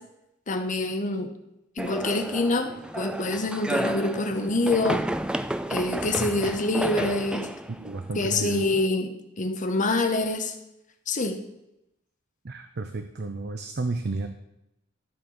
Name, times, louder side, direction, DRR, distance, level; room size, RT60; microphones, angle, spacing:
voice 1, 0.5-1.3 1.8-5.0 5.7-7.5 8.1-10.5 11.1-11.4, left 2 dB, 40° left, 6 dB, 1.0 m, -26 dB
sound 1, 1.8-8.9, right 1 dB, 5° right, 0.4 m, -32 dB
voice 2, 7.8-8.6 12.4-14.3, right 3 dB, 60° right, 7 dB, 0.7 m, -32 dB
13.0 x 4.4 x 6.6 m, 0.87 s
head